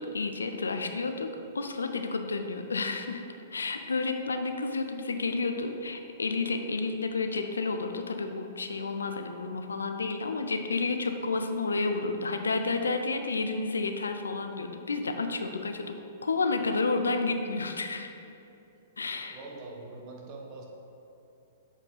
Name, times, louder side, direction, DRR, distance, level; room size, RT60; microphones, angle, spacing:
voice 1, 0.0-3.2 3.5-18.1 19.0-19.4, left 3 dB, 70° left, 6 dB, 0.5 m, -31 dB
voice 2, 19.3-20.6, right 2 dB, 35° right, 0 dB, 1.2 m, -43 dB
7.7 x 4.8 x 3.9 m, 2.7 s
figure-of-eight pair, 110°, 0 cm